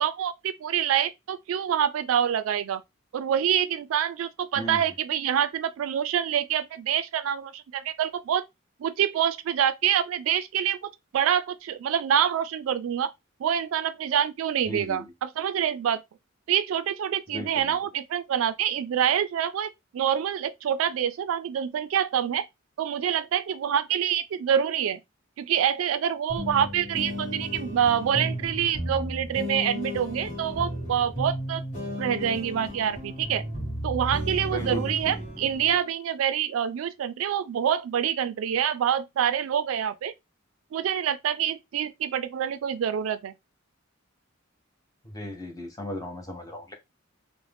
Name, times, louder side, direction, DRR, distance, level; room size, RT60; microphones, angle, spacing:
voice 1, 0.0-2.8 3.1-8.4 8.8-13.1 13.4-16.0 16.5-22.5 22.8-25.0 25.4-31.6 32.0-33.4 33.8-40.1 40.7-43.3, right 9 dB, 80° right, 0.3 m, -26 dB
voice 2, 14.7-15.1 17.3-17.8 34.5-35.2 45.1-46.7, equal, 20° left, 0.7 m, -36 dB
sound 1, 26.3-35.8, equal, 35° left, 1.3 m, -34 dB
2.5 x 2.1 x 3.3 m
head